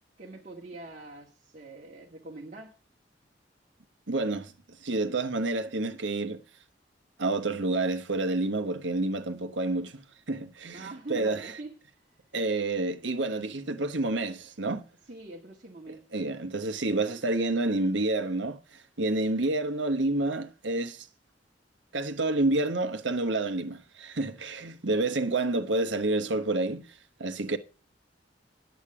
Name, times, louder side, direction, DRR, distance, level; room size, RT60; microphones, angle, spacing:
voice 1, 0.2-2.7 10.7-11.7 15.1-16.0, right 2 dB, 40° right, 1.9 m, -43 dB
voice 2, 4.1-4.5 4.8-6.4 7.2-10.0 10.3-11.5 12.3-14.8 16.1-18.6 19.0-21.1 21.9-26.9 27.2-27.6, right 2 dB, 85° right, 1.2 m, -29 dB
10.5 x 8.3 x 4.8 m
head